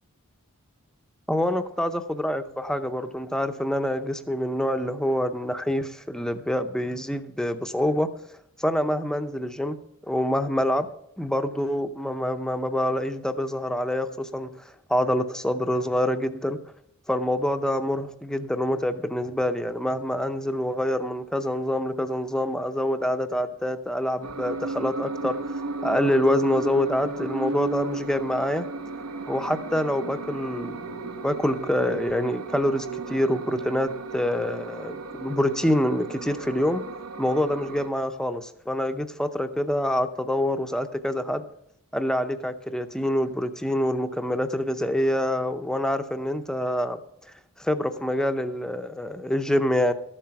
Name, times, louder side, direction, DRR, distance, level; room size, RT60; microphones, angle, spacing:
voice 1, 1.3-8.1 8.6-9.8 10.1-10.9 11.2-16.6 17.1-25.4 25.8-28.7 29.3-36.8 37.2-41.4 41.9-47.0 47.3-49.9, left 1 dB, 5° left, 9 dB, 0.6 m, -26 dB
sound 1, 24.2-37.9, right 3 dB, 75° right, 0.9 m, -35 dB
13.5 x 7.5 x 5.8 m, 0.76 s
head